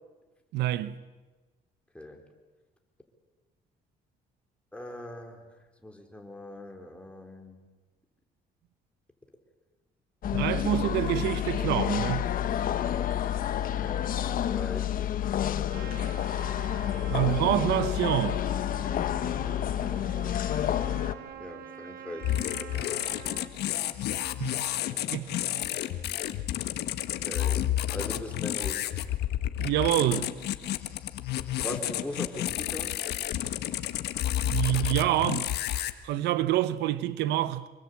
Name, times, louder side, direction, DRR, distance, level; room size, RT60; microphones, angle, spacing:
voice 1, 0.5-0.9 10.3-12.3 17.1-18.4 24.4-24.6 25.1-25.6 29.6-30.3 34.4-35.5 36.0-37.7, right 14 dB, 85° right, 1.0 m, -27 dB
voice 2, 4.7-5.5 5.8-7.6 13.7-15.1 19.3-20.1 21.3-22.3 22.6-23.5 24.9-25.2 27.2-29.0 31.6-33.0, left 1 dB, 5° left, 4.5 m, -41 dB
sound 1, 10.2-21.1, left 11 dB, 55° left, 1.3 m, -29 dB
Trumpet, 15.7-23.5, right 10 dB, 60° right, 2.6 m, -46 dB
sound 2, 22.2-35.9, left 13 dB, 75° left, 1.5 m, -31 dB
26.5 x 23.5 x 8.5 m
cardioid pair, 110°, 17 cm